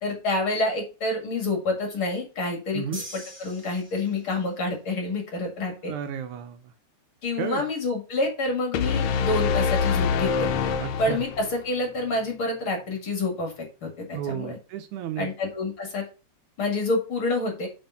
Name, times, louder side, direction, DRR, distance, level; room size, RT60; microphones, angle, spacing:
voice 1, 0.0-5.9 7.2-10.5 11.0-14.6 15.2-16.0 16.6-17.7, left 2 dB, 45° left, 2 dB, 2.5 m, -28 dB
sound 1, 2.9-4.5, right 1 dB, 15° right, 2.1 m, -42 dB
voice 2, 5.8-6.7 7.4-7.7 10.8-11.2 14.1-15.3, right 9 dB, 75° right, 8 dB, 2.0 m, -33 dB
sound 2, 8.7-11.7, left 6 dB, 70° left, 1.9 m, -25 dB
7.0 x 5.1 x 5.6 m, 0.32 s
omnidirectional pair, 3.6 m